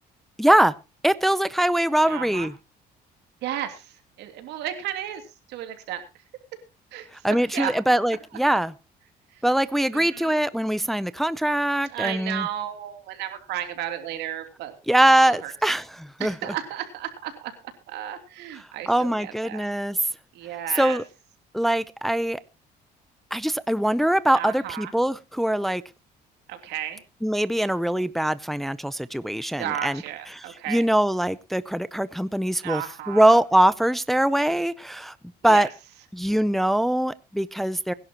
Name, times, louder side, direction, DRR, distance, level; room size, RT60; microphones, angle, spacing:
voice 1, 0.4-0.7 1.0-2.5 7.2-8.7 9.4-12.5 14.9-16.3 18.9-20.0 20.8-21.0 21.5-22.4 23.3-25.8 27.2-30.0 30.7-32.8 33.1-35.1 35.4-35.7 36.1-37.9, right 1 dB, ahead, 0.6 m, -22 dB
voice 2, 2.1-2.5 3.4-6.0 6.9-7.7 9.3-9.4 9.9-10.3 11.9-14.7 15.3-15.5 16.2-19.6 20.3-21.0 24.3-24.9 26.5-27.0 29.6-30.8 32.6-33.4 35.5-35.7, right 11 dB, 85° right, 3.0 m, -33 dB
21.0 x 11.0 x 2.9 m
cardioid pair, 110°, 17 cm